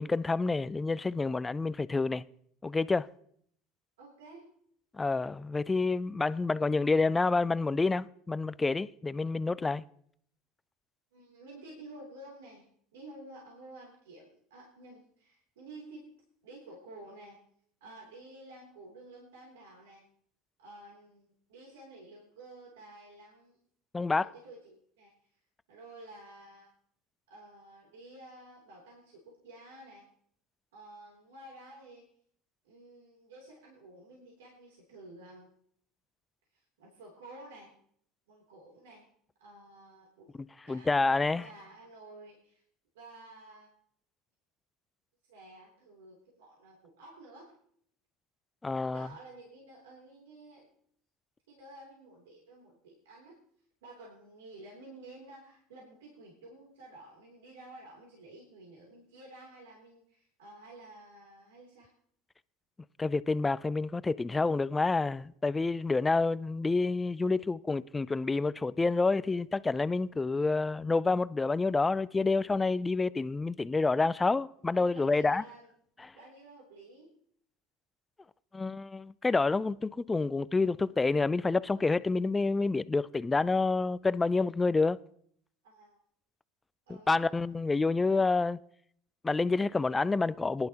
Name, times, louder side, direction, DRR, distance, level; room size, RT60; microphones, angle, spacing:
voice 1, 0.0-2.2 2.6-3.1 4.9-9.8 23.9-24.3 40.7-41.4 48.6-49.1 63.0-75.4 76.0-76.1 78.5-85.0 87.1-88.6 89.2-90.7, left 3 dB, 15° left, 0.4 m, -28 dB
voice 2, 4.0-4.5 11.1-16.1 16.4-17.4 17.8-20.0 20.6-23.6 24.2-25.1 25.7-26.7 27.3-30.1 30.7-32.1 32.6-35.5 36.5-37.7 38.3-39.1 39.4-40.4 40.7-42.6 42.9-43.7 45.3-47.5 48.8-50.7 51.5-53.4 53.8-61.9 74.9-75.7 76.1-77.1 85.6-86.0 86.9-87.4, right 2 dB, 90° right, 3.1 m, -51 dB
19.0 x 11.0 x 2.9 m
supercardioid pair, 90°, 0 cm